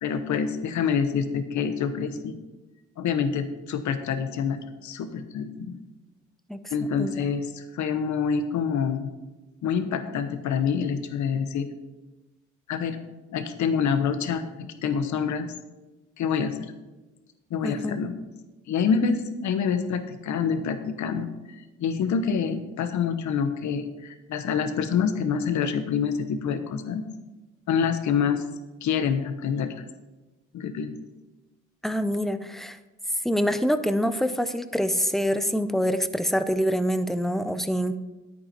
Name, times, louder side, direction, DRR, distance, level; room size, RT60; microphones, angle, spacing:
voice 1, 0.0-2.4 3.0-5.8 6.7-9.1 9.6-11.7 12.7-13.0 13.3-15.5 16.2-16.7 17.5-18.2 18.7-21.3 21.8-27.0 27.7-28.4 28.8-29.8 30.5-30.9, left 6 dB, 70° left, 10 dB, 1.1 m, -26 dB
voice 2, 6.5-7.3 17.6-18.0 31.8-32.8 33.2-38.0, equal, ahead, 11 dB, 0.6 m, -26 dB
10.0 x 8.6 x 4.4 m, 1.1 s
cardioid pair, 90°, 30 cm